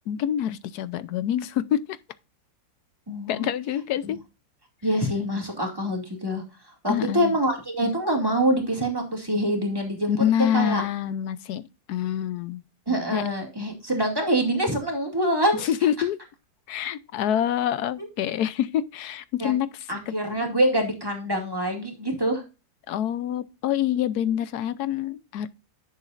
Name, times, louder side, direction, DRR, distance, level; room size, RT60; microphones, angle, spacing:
voice 1, 0.1-2.0 3.3-4.2 6.9-7.4 10.1-11.6 11.9-12.6 13.1-13.2 15.6-16.2 16.7-19.9 22.9-25.5, left 10 dB, 75° left, 1.2 m, -26 dB
voice 2, 3.1-3.5 4.0-4.1 4.8-6.4 6.8-10.8 12.9-15.7 18.0-18.1 19.4-19.5 19.9-22.4, right 1 dB, 15° right, 2.3 m, -25 dB
10.5 x 7.1 x 2.5 m
omnidirectional pair, 1.8 m